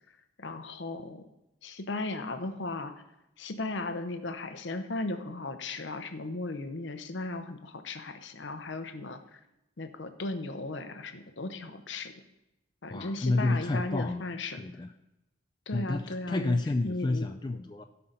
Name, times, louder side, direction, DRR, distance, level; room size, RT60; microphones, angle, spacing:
voice 1, 0.4-1.2 1.6-2.9 3.4-9.4 9.8-12.1 12.8-14.6 15.7-16.6 16.8-17.3, left 2 dB, 65° left, 8 dB, 0.8 m, -36 dB
voice 2, 12.9-14.3 14.6-14.9 15.7-17.8, left 2 dB, 20° left, 6 dB, 0.3 m, -30 dB
16.5 x 5.7 x 3.9 m, 0.91 s
head